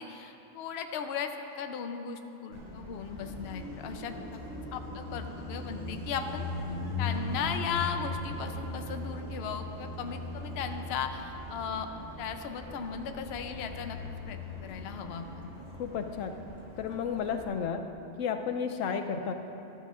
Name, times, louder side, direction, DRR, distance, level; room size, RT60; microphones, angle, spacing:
voice 1, 0.0-4.4 4.7-6.5 7.0-11.9 12.2-14.0 14.3-15.5, left 7 dB, 60° left, 6 dB, 0.8 m, -37 dB
Car passing by, 2.5-17.5, left 2 dB, 30° right, 1.5 m, -39 dB
voice 2, 15.8-16.3 16.8-17.8 18.2-19.3, left 6 dB, 90° left, 6 dB, 1.0 m, -32 dB
13.5 x 12.5 x 2.4 m, 2.9 s
omnidirectional pair, 1.3 m